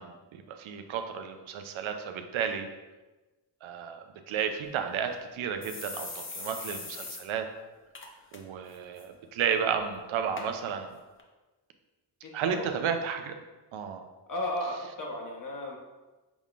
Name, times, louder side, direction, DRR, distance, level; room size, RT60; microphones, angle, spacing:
voice 1, 0.0-2.7 3.6-7.5 8.3-10.9 12.3-13.3 13.7-14.0, right 7 dB, 85° right, 6 dB, 0.6 m, -32 dB
sound 1, 4.7-4.8 5.1-5.2 5.6-7.2 7.6-7.7 7.9-8.4 8.7-9.0 9.7-9.8 10.4-10.5 11.2-11.3, left 3 dB, 25° left, 0.7 m, -40 dB
voice 2, 12.2-12.7 14.3-15.8, left 1 dB, 40° left, -1 dB, 1.2 m, -34 dB
6.0 x 3.6 x 2.4 m, 1.2 s
cardioid pair, 65°, 46 cm